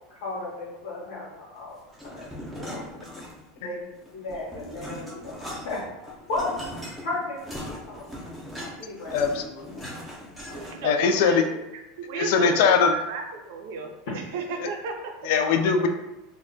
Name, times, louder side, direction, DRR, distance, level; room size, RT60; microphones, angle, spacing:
voice 1, 0.1-2.8 3.6-3.8 4.1-6.6 7.0-7.4 7.8-8.4 8.8-9.2 9.7-10.0 15.4-15.9, left 2 dB, 80° left, -7 dB, 0.8 m, -35 dB
sound 1, 1.9-3.6 4.0-11.0, equal, ahead, 0.5 m, -39 dB
voice 2, 9.1-9.9 10.8-11.4 12.2-12.9 15.2-15.9, left 6 dB, 60° left, 6 dB, 0.3 m, -21 dB
voice 3, 10.5-15.1, right 4 dB, 70° right, 3 dB, 0.5 m, -35 dB
2.2 x 2.1 x 3.8 m, 0.95 s
supercardioid pair, 170°, 0 cm